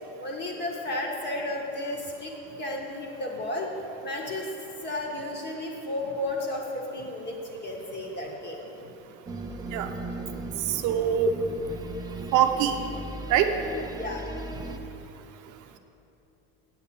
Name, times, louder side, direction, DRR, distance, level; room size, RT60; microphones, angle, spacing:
voice 1, 0.2-2.3 2.6-3.7 4.0-4.5 4.8-8.6 13.9-14.2 14.5-14.6, left 1 dB, 30° left, -1 dB, 1.6 m, -33 dB
sound 1, 9.3-14.8, right 2 dB, 10° right, 0.5 m, -37 dB
voice 2, 10.7-11.3 12.3-12.7 13.3-13.5, right 9 dB, 55° right, 6 dB, 0.8 m, -23 dB
8.4 x 6.6 x 7.1 m, 2.8 s
cardioid pair, 130°, 36 cm